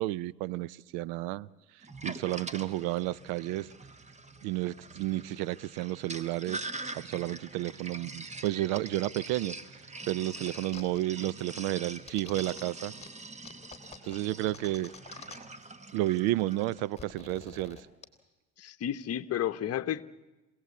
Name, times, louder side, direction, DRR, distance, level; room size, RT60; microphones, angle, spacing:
voice 1, 0.0-1.5 2.0-3.7 4.4-6.6 6.9-9.5 10.1-12.9 14.1-14.9 15.9-17.8, right 16 dB, 85° right, 0.7 m, -31 dB
Sink (filling or washing), 1.8-16.9, right 2 dB, 20° right, 1.4 m, -44 dB
sound 1, 10.2-11.0 11.3-12.6 13.0-13.1 13.4-15.6 15.9-16.0 16.2-18.0, left 5 dB, 20° left, 2.9 m, -48 dB
voice 2, 18.6-20.0, left 10 dB, 45° left, 1.1 m, -32 dB
26.0 x 18.0 x 8.4 m
supercardioid pair, 95°, 35 cm